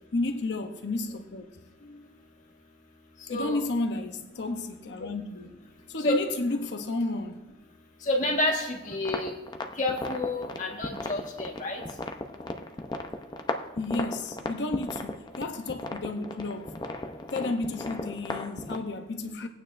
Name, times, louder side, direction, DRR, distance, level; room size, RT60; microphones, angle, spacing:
voice 1, 0.1-1.5 1.8-2.1 3.3-5.6 5.9-7.4 13.8-16.7 17.3-19.5, left 2 dB, 75° left, 0.7 m, -32 dB
voice 2, 8.1-9.3 9.8-11.8, left 1 dB, 45° left, 1.5 m, -29 dB
sound 1, 8.9-18.8, left 2 dB, 25° left, 0.6 m, -36 dB
19.0 x 8.9 x 2.5 m
head